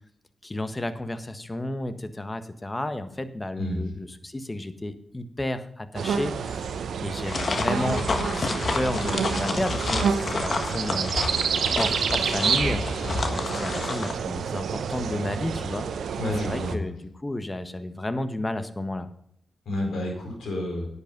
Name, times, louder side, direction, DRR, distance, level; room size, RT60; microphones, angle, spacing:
voice 1, 0.4-15.9 16.4-19.1, left 1 dB, 25° left, 10 dB, 1.5 m, -32 dB
sound 1, 5.9-16.8, right 6 dB, 85° right, 0.9 m, -28 dB
sound 2, 7.3-14.1, left 3 dB, 60° left, 1.6 m, -29 dB
voice 2, 16.2-16.8 19.6-20.9, left 1 dB, 85° left, 0 dB, 4.6 m, -30 dB
10.5 x 8.5 x 5.3 m, 0.69 s
supercardioid pair, 40°, 0 cm